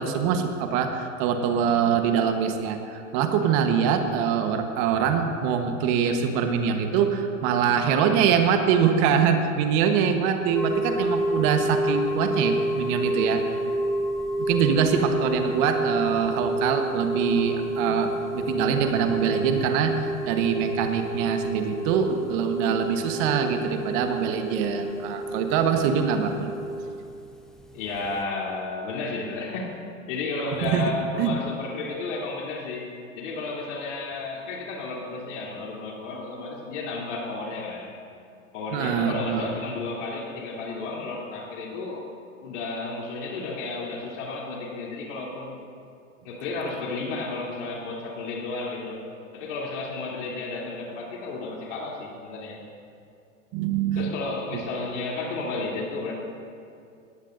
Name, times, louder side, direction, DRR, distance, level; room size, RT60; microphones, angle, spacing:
voice 1, 0.0-13.4 14.4-26.5 30.6-31.4 38.7-39.5 53.5-54.1 54.5-54.6, right 7 dB, 45° right, 6 dB, 1.4 m, -24 dB
sound 1, 10.5-28.2, right 1 dB, ahead, 0.3 m, -29 dB
voice 2, 27.7-29.7 30.1-37.9 38.5-42.1 42.4-45.6 46.2-49.0 49.3-52.6 54.0-56.2, left 3 dB, 60° left, -2 dB, 3.4 m, -32 dB
19.5 x 16.0 x 2.7 m, 2.5 s
hypercardioid pair, 110°, 40 cm